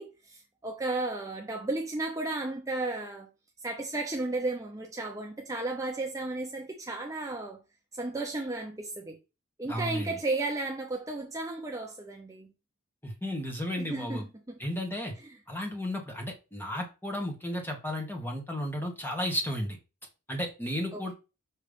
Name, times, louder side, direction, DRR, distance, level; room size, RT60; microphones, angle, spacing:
voice 1, 0.0-3.3 3.6-7.6 7.9-9.2 9.6-12.5 13.8-14.6 15.2-15.4 20.9-21.1, right 2 dB, 15° right, 0.7 m, -34 dB
voice 2, 9.7-10.1 13.0-14.2 14.6-15.1 15.5-19.8 20.3-21.1, equal, 10° left, 1.5 m, -33 dB
6.4 x 3.2 x 5.3 m
head